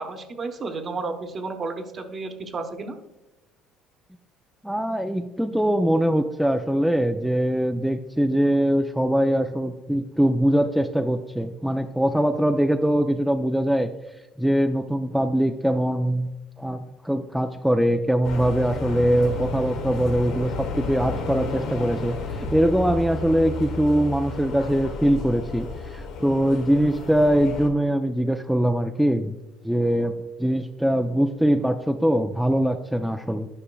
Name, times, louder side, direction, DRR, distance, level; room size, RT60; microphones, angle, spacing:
voice 1, 0.0-3.0, right 3 dB, 40° right, 6 dB, 0.9 m, -32 dB
voice 2, 4.6-13.9 14.4-16.3 16.6-29.4 29.6-33.5, equal, ahead, 5 dB, 0.4 m, -22 dB
sound 1, 18.2-27.7, left 3 dB, 75° left, 1.0 m, -32 dB
9.9 x 5.5 x 2.3 m, 1.0 s
supercardioid pair, 85°, 0 cm